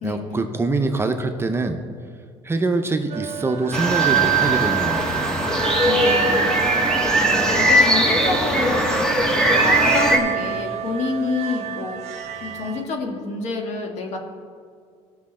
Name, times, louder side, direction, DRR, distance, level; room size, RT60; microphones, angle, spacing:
voice 1, 0.0-1.8 2.4-5.3, right 3 dB, 20° right, 6 dB, 0.6 m, -24 dB
sound 1, 3.1-12.8, right 10 dB, 60° right, 0.7 m, -26 dB
sound 2, 3.7-10.2, equal, 5° left, 1.2 m, -20 dB
voice 2, 5.8-6.5 7.1-9.1 9.5-12.0 12.4-14.2, left 3 dB, 60° left, 2 dB, 1.7 m, -28 dB
16.0 x 6.2 x 4.2 m, 2.1 s
cardioid pair, 115°, 13 cm